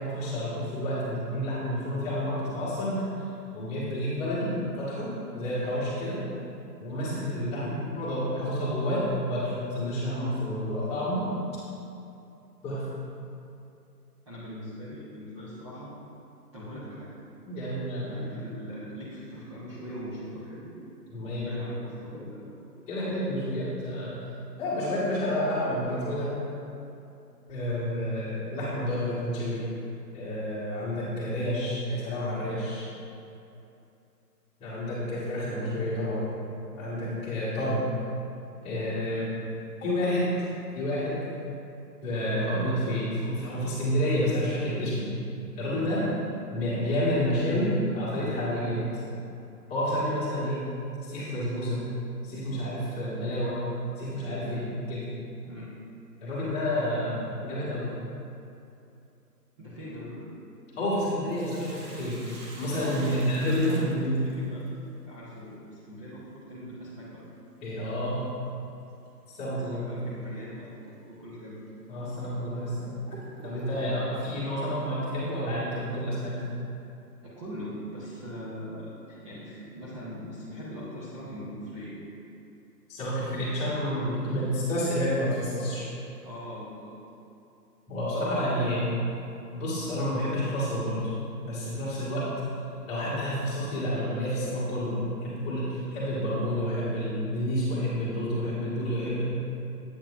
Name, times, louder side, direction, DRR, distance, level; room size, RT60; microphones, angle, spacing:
voice 1, 0.0-3.0 3.5-4.5 4.8-5.1 5.3-6.2 6.8-7.7 8.0-9.0 9.3-11.2 12.6-12.8 17.4-18.2 21.1-21.6 22.9-24.1 24.6-26.3 27.5-29.6 30.1-32.8 34.6-36.3 36.7-37.8 38.6-39.2 39.8-40.3 40.7-41.2 42.0-45.1 45.6-46.0 46.5-48.8 49.7-50.6 51.0-51.8 52.2-53.6 54.0-55.0 56.2-57.9 60.7-64.2 67.6-68.2 69.3-69.9 71.9-73.0 73.4-76.3 82.9-85.9 87.9-88.9 89.5-91.1 91.4-92.3 92.9-99.2, equal, 15° left, -10 dB, 1.5 m, -29 dB
voice 2, 14.3-15.9 16.5-17.2 18.0-20.7 21.3-23.2 39.0-39.3 45.9-46.1 54.4-54.8 55.5-55.8 59.6-60.3 63.1-64.7 65.1-67.2 69.7-71.6 77.4-82.0 86.2-86.9, equal, 20° right, -11 dB, 0.8 m, -41 dB
Sink (filling or washing), 61.3-64.7 67.1-67.2 69.0-69.3 69.8-69.9 70.6-70.8 71.5-71.6 72.2-74.1, right 1 dB, 65° right, 1.7 m, -46 dB
8.3 x 7.8 x 2.5 m, 2.7 s
hypercardioid pair, 145°, 48 cm